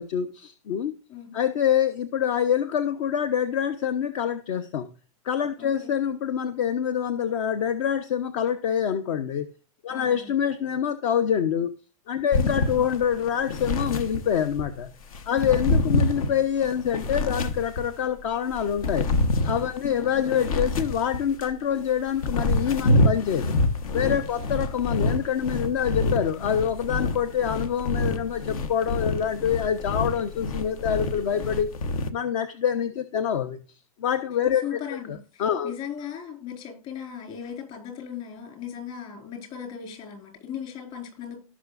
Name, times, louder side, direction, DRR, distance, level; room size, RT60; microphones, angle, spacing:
voice 1, 0.0-0.9 1.3-4.9 5.2-9.5 9.8-11.7 12.1-14.9 15.3-19.1 19.4-23.6 23.9-31.7 32.1-33.6 34.0-34.8 35.1-35.7, left 8 dB, 60° left, 0.9 m, -26 dB
voice 2, 1.1-1.4 5.6-5.9 9.9-10.3 12.3-12.6 15.4-15.7 19.8-20.1 24.4-24.5 34.6-41.4, left 8 dB, 40° left, 4.6 m, -38 dB
sound 1, 12.3-14.7 15.1-18.1 18.5-21.5 22.0-32.1, left 2 dB, 80° left, 1.2 m, -27 dB
17.5 x 6.2 x 2.5 m
hypercardioid pair, 130°, 18 cm